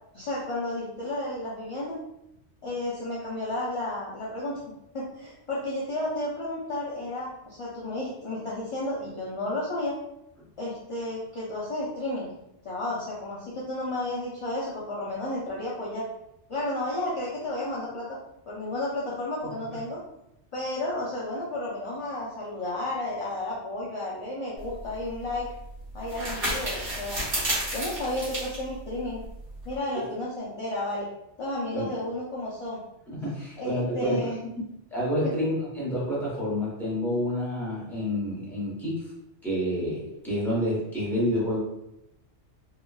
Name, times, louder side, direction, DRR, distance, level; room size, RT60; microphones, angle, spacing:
voice 1, 0.1-2.0 2.6-4.6 4.9-9.9 10.6-12.3 12.6-16.1 16.5-18.2 18.5-20.0 20.5-25.5 25.9-27.2 27.7-29.2 29.7-31.1 31.4-32.8 33.6-34.4 35.2-35.3, left 1 dB, 50° left, -6 dB, 0.4 m, -32 dB
sound 1, 24.6-29.8, right 1 dB, 55° right, 1.3 m, -32 dB
voice 2, 33.1-34.3 34.9-39.0 39.4-41.6, equal, ahead, -8 dB, 0.9 m, -28 dB
3.0 x 2.1 x 2.3 m, 0.82 s
omnidirectional pair, 1.2 m